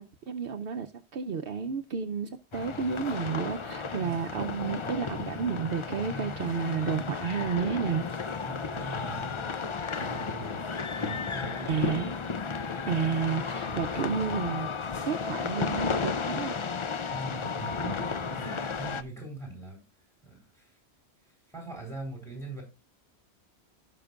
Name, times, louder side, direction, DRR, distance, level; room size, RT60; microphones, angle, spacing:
voice 1, 0.0-8.0 11.7-12.1 12.9-14.7 15.0-16.6, right 6 dB, 65° right, 0.8 m, -31 dB
sound 1, 2.5-19.0, left 5 dB, 40° left, 0.4 m, -33 dB
voice 2, 8.4-12.0 13.6-13.8 17.1-19.8 20.2-20.8 21.5-22.6, right 3 dB, 5° left, 4.5 m, -42 dB
17.0 x 5.9 x 2.4 m
omnidirectional pair, 1.1 m